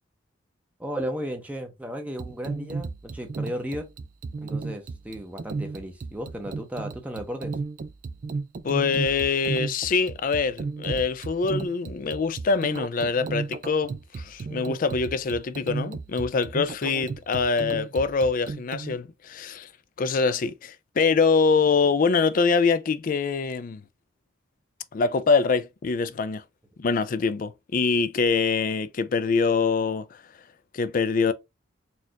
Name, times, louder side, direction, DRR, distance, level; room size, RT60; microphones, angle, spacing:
voice 1, 0.8-3.9 4.4-7.6, equal, 5° right, 0.7 m, -34 dB
sound 1, 2.2-19.0, right 4 dB, 40° right, 0.3 m, -34 dB
voice 2, 8.6-19.7 20.0-23.8 24.9-26.4 26.8-30.2 30.7-31.3, left 4 dB, 45° left, 0.4 m, -24 dB
4.3 x 2.4 x 2.8 m
head